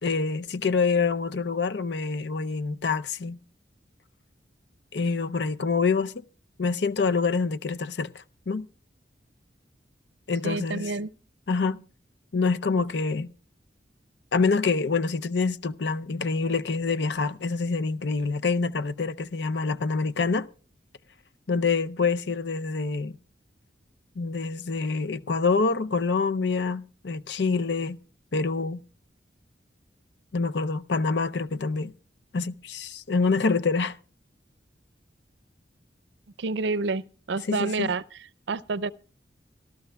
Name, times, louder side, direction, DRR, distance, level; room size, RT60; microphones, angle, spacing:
voice 1, 0.0-3.4 4.9-6.2 6.6-8.7 10.3-10.9 11.5-11.8 12.3-13.3 14.3-20.5 21.5-23.2 24.2-28.0 28.3-28.8 30.3-31.9 32.3-34.0 37.5-37.9, left 4 dB, 70° left, 0.6 m, -26 dB
voice 2, 10.4-11.1 36.4-37.0 37.3-38.0 38.5-38.9, right 3 dB, 75° right, 0.5 m, -28 dB
25.0 x 13.5 x 2.3 m
head